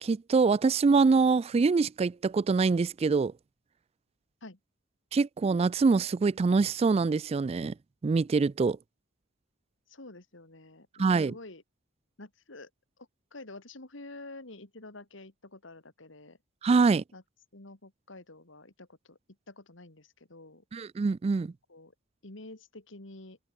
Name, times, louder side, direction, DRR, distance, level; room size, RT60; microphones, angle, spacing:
voice 1, 0.0-3.3 5.1-7.7 8.0-8.8 11.0-11.3 16.6-17.0 20.7-21.5, right 4 dB, 30° right, 0.3 m, -24 dB
voice 2, 9.9-11.6 12.2-12.7 13.0-16.4 17.1-17.2 17.5-19.2 19.5-20.6 21.7-21.9 22.2-23.4, left 2 dB, 65° left, 2.6 m, -48 dB
head